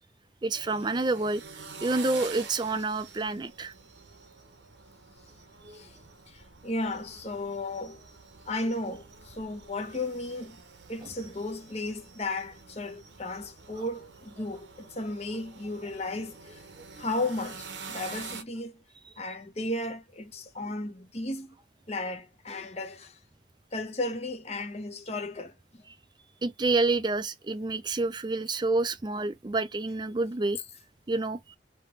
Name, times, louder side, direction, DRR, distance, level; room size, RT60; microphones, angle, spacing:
voice 1, 0.4-1.4 1.8-3.7 5.6-5.9 17.0-17.1 26.4-30.6 31.1-31.6, right 3 dB, 25° right, 0.4 m, -28 dB
sound 1, 0.5-18.4, right 5 dB, 75° right, 0.9 m, -47 dB
voice 2, 6.3-8.0 8.5-10.6 10.9-16.6 17.0-18.8 19.2-21.6 21.9-23.2 23.7-25.8, left 2 dB, 35° left, 0.9 m, -34 dB
3.4 x 3.0 x 4.4 m
head